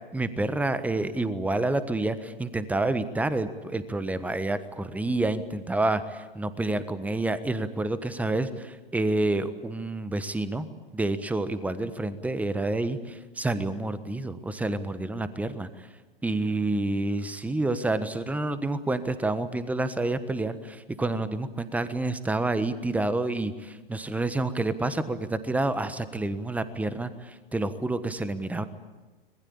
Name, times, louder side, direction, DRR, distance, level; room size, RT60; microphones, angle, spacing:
voice 1, 0.0-10.7 10.9-15.7 16.2-28.6, right 2 dB, 5° right, 13 dB, 1.3 m, -28 dB
26.0 x 20.5 x 8.7 m, 1.3 s
figure-of-eight pair, 105°, 29 cm